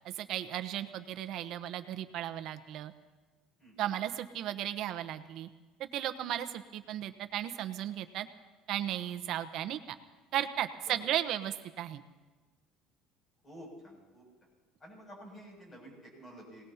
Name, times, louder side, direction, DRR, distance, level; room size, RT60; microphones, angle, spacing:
voice 1, 0.0-2.9 3.8-5.5 5.8-8.3 8.7-10.0 10.3-12.0, right 11 dB, 60° right, 9 dB, 1.0 m, -35 dB
voice 2, 3.6-3.9 10.9-11.0 13.4-14.3 14.8-16.7, equal, 25° left, -1 dB, 7.3 m, -50 dB
26.0 x 19.0 x 2.9 m, 1.3 s
cardioid pair, 130°, 0 cm